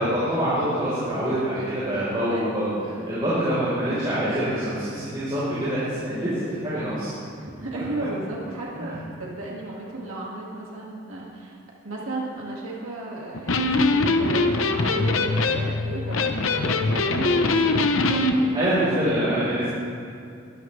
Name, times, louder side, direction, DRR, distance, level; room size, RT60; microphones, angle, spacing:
voice 1, 0.0-2.7 3.1-7.1 8.8-8.9 18.5-19.7, equal, 25° right, -11 dB, 4.2 m, -25 dB
voice 2, 2.3-3.1 7.4-8.9 9.2-11.6 11.8-19.6, right 2 dB, 80° right, -4 dB, 2.2 m, -34 dB
Electric guitar, 13.3-18.4, left 3 dB, 75° left, 0.9 m, -22 dB
22.0 x 13.0 x 3.3 m, 2.5 s
head